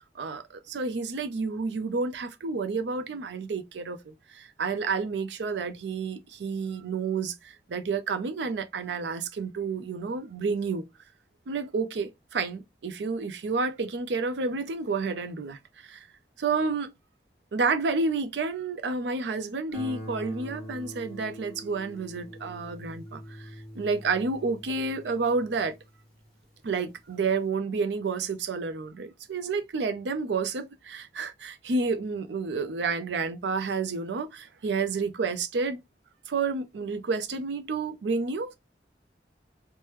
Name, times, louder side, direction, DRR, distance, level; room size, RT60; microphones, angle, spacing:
voice 1, 0.2-10.8 11.5-16.1 16.4-16.9 17.5-25.7 26.6-35.8 36.3-38.6, right 4 dB, 80° right, 0.4 m, -30 dB
Guitar, 19.7-26.4, equal, 5° left, 1.2 m, -44 dB
3.2 x 2.1 x 3.0 m
head